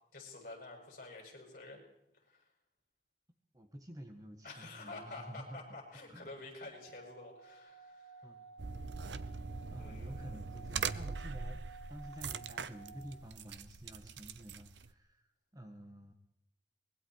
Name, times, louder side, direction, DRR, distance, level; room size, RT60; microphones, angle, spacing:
voice 1, 0.1-1.8 2.2-2.5 4.4-8.3 9.7-10.2, left 2 dB, 50° left, 0 dB, 7.7 m, -49 dB
voice 2, 3.5-5.8 6.1-6.3 8.2-8.4 9.7-16.1, right 1 dB, 20° right, 5 dB, 1.7 m, -50 dB
Singing / Glass, 6.7-13.3, right 5 dB, 10° left, 7.5 m, -55 dB
sound 1, 8.6-14.9, right 5 dB, 90° right, 0.8 m, -42 dB
24.5 x 22.0 x 4.8 m, 0.80 s
head